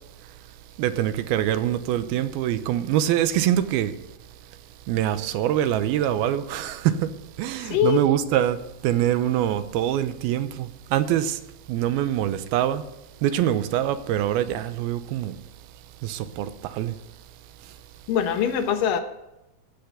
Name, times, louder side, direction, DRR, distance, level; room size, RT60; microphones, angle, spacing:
voice 1, 0.8-4.0 4.9-11.4 11.7-12.9 13.2-15.4 16.0-17.0, right 11 dB, 85° right, 2.7 m, -24 dB
voice 2, 7.6-8.0 18.1-19.0, left 9 dB, 70° left, 2.5 m, -23 dB
15.0 x 6.8 x 8.0 m
omnidirectional pair, 4.3 m